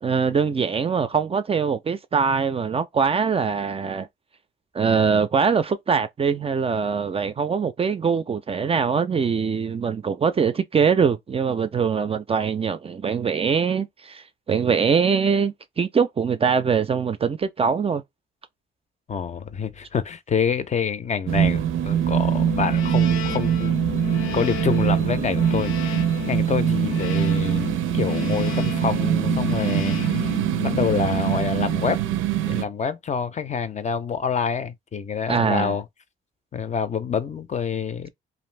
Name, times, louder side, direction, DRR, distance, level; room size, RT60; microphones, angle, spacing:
voice 1, 0.0-4.1 4.7-18.0 35.3-35.8, right 6 dB, 30° right, 0.4 m, -23 dB
voice 2, 19.1-23.8 24.3-30.2 30.6-32.0 32.4-35.8 36.5-38.1, left 6 dB, 35° left, 0.5 m, -27 dB
sound 1, 21.3-32.6, right 10 dB, 85° right, 0.5 m, -23 dB
sound 2, 22.2-32.1, left 13 dB, 80° left, 0.6 m, -32 dB
2.5 x 2.5 x 3.2 m
cardioid pair, 90°, 20 cm